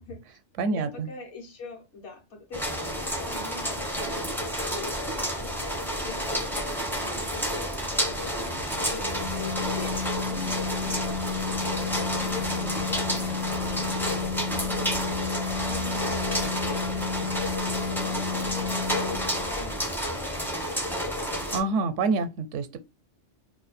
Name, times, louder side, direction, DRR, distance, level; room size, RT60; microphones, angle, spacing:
voice 1, 0.0-0.4 0.7-4.2 4.6-5.7 6.0-8.6 8.9-10.0 10.3-11.1 11.4-14.3 14.6-19.9 20.5-20.7, left 4 dB, 70° left, 1.4 m, -44 dB
voice 2, 0.6-1.1 21.5-22.8, right 3 dB, 85° right, 0.9 m, -27 dB
sound 1, 2.5-21.6, equal, 5° left, 0.4 m, -30 dB
sound 2, 8.0-18.5, right 2 dB, 40° left, 0.7 m, -46 dB
Organ, 9.0-19.6, left 6 dB, 90° left, 1.0 m, -32 dB
3.0 x 2.3 x 4.1 m
omnidirectional pair, 1.2 m